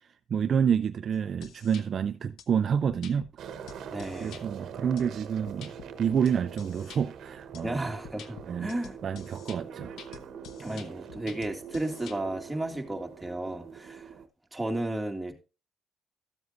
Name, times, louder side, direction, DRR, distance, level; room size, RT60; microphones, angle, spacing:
voice 1, 0.3-3.3 4.2-5.7 6.0-7.9 8.5-8.7 9.0-9.9 10.7-10.8, right 7 dB, 55° right, 0.5 m, -28 dB
sound 1, 1.1-1.8 2.4-2.5 2.9-3.3 3.7-4.4 5.0-7.0 7.5-7.6 8.0-12.2, left 8 dB, 85° left, 0.9 m, -48 dB
sound 2, 3.4-14.3, right 7 dB, 75° right, 1.1 m, -44 dB
voice 2, 3.9-4.4 7.6-9.0 10.6-14.0 14.5-15.3, right 1 dB, 10° right, 2.1 m, -33 dB
13.5 x 7.8 x 2.6 m
cardioid pair, 90°, 0 cm